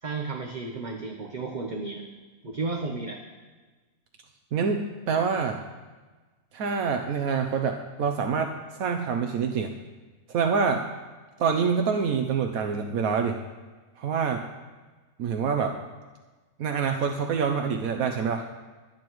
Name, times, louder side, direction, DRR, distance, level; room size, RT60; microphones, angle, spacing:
voice 1, 0.0-2.0 2.4-3.2, right 3 dB, 35° right, 2 dB, 1.0 m, -33 dB
voice 2, 4.5-5.6 6.5-9.7 10.3-10.8 11.4-13.4 14.0-14.4 15.2-15.8 16.6-18.4, right 6 dB, 80° right, 4 dB, 1.2 m, -26 dB
25.0 x 8.9 x 3.1 m, 1.3 s
omnidirectional pair, 1.5 m